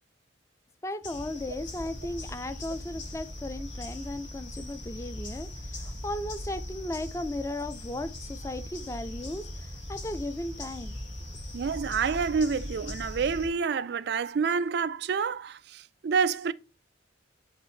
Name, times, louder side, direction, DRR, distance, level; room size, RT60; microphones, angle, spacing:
voice 1, 0.8-10.9, left 1 dB, 15° left, 0.4 m, -36 dB
sound 1, 1.0-13.5, left 1 dB, 75° left, 3.6 m, -40 dB
voice 2, 11.5-16.5, right 5 dB, 55° right, 0.3 m, -28 dB
7.9 x 3.5 x 3.4 m
head